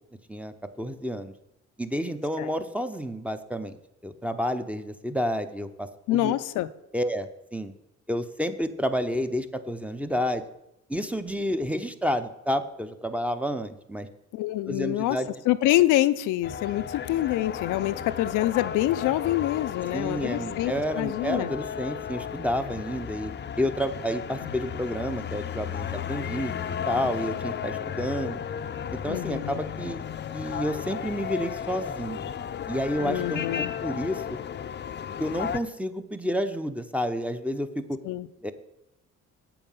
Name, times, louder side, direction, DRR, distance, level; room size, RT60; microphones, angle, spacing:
voice 1, 0.3-1.3 1.8-3.8 4.0-6.4 6.9-7.7 8.1-10.4 10.9-14.1 14.7-15.3 19.9-23.3 23.6-28.4 28.9-30.0 30.3-32.3 32.7-34.2 35.2-38.0 38.4-38.5, equal, 5° right, 9 dB, 0.7 m, -30 dB
voice 2, 6.1-6.7 14.3-15.2 15.5-21.5 24.4-24.5 29.1-29.6 33.0-33.7 38.0-38.3, left 15 dB, 85° left, 12 dB, 0.5 m, -26 dB
sound 1, 16.4-35.6, left 8 dB, 35° left, 0.5 m, -34 dB
8.2 x 7.0 x 5.5 m, 0.85 s
cardioid pair, 90°, 30 cm